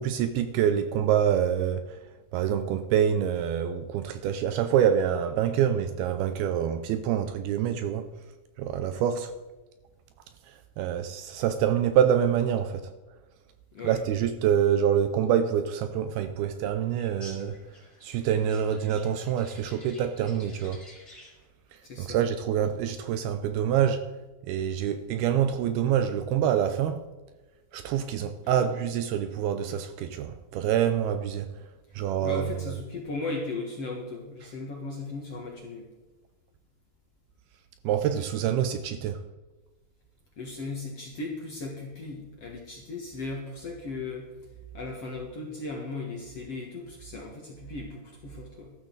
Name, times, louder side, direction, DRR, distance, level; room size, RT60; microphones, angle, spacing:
voice 1, 0.0-2.0 2.3-8.1 8.6-9.3 10.5-12.9 13.8-17.6 18.0-20.8 22.0-24.1 24.4-27.0 27.7-31.5 31.9-32.5 37.8-39.2, right 9 dB, 80° right, 2.4 m, -26 dB
sound 1, 17.0-21.5, left 1 dB, 15° left, 4.0 m, -51 dB
voice 2, 21.8-22.2 28.4-28.7 32.2-35.9 40.4-44.3 44.7-48.7, left 3 dB, 50° left, 2.0 m, -37 dB
13.0 x 13.0 x 4.0 m
omnidirectional pair, 4.8 m